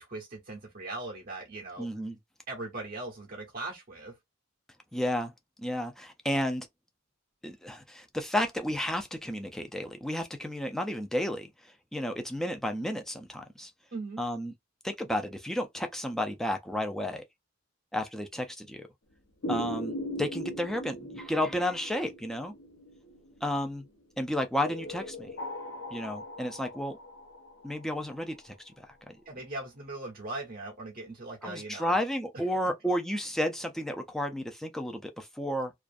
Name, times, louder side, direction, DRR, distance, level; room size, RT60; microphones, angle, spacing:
voice 1, 0.1-1.9 2.5-4.2 13.9-14.2 29.3-32.0 32.6-32.7, right 2 dB, 45° right, 0.6 m, -39 dB
voice 2, 1.8-2.2 4.9-5.3 5.6-6.7 7.4-13.7 14.2-14.5 14.8-17.2 17.9-18.9 19.5-22.5 23.4-23.9 24.2-25.3 25.9-27.0 27.6-29.2 31.4-35.7, equal, ahead, 0.3 m, -32 dB
sound 1, 19.4-23.7 24.6-28.4, equal, 75° left, 0.7 m, -39 dB
2.4 x 2.3 x 2.4 m
head